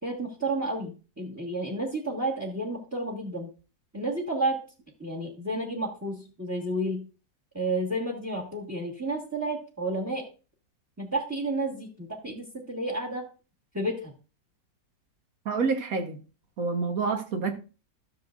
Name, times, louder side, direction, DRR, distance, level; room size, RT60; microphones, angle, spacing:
voice 1, 0.0-3.5 3.9-4.6 5.0-7.0 7.5-10.2 11.0-13.2 13.7-14.1, right 2 dB, 10° right, 1.4 m, -31 dB
voice 2, 15.4-16.2 16.6-17.6, right 4 dB, 55° right, 1.6 m, -28 dB
13.5 x 6.9 x 2.5 m
omnidirectional pair, 1.8 m